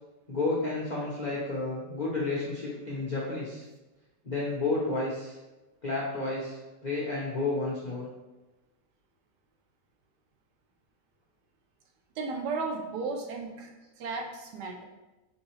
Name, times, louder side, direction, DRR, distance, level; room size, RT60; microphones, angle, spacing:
voice 1, 0.3-3.6 4.2-5.4 5.8-8.0, left 3 dB, 90° left, -5 dB, 0.4 m, -31 dB
voice 2, 12.2-13.7 14.0-14.8, right 4 dB, 70° right, 2 dB, 1.2 m, -34 dB
3.8 x 3.7 x 3.1 m, 1.1 s
omnidirectional pair, 1.9 m